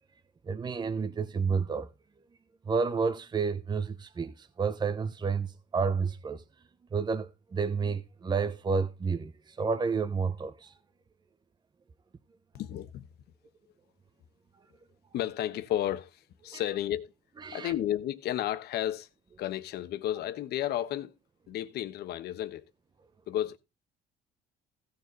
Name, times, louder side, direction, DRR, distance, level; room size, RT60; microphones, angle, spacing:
voice 1, 0.5-1.9 2.7-6.4 6.9-10.7 16.5-16.6 17.4-17.7, right 5 dB, 25° right, 0.9 m, -30 dB
voice 2, 12.5-13.1 15.1-17.1 17.5-19.1 19.4-21.2 21.5-22.7 23.3-23.6, left 12 dB, 70° left, 1.2 m, -32 dB
16.0 x 6.9 x 4.1 m
cardioid pair, 110°, 17 cm